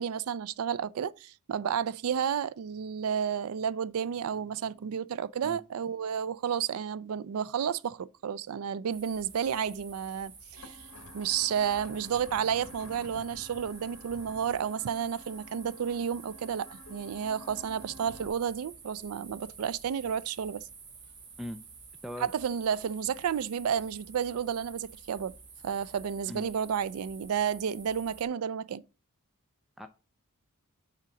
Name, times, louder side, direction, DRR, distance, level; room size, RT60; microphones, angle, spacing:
voice 1, 0.0-10.8 11.1-20.6 22.2-25.3 25.6-28.8, right 8 dB, 75° right, 0.4 m, -31 dB
voice 2, 5.4-5.6 21.4-21.6 22.0-22.3 26.3-26.4 29.8-29.9, equal, ahead, 0.3 m, -39 dB
sound 1, 8.9-28.3, right 5 dB, 55° right, 1.6 m, -50 dB
sound 2, 10.6-18.3, left 1 dB, 85° left, 1.1 m, -50 dB
5.7 x 3.9 x 5.9 m
head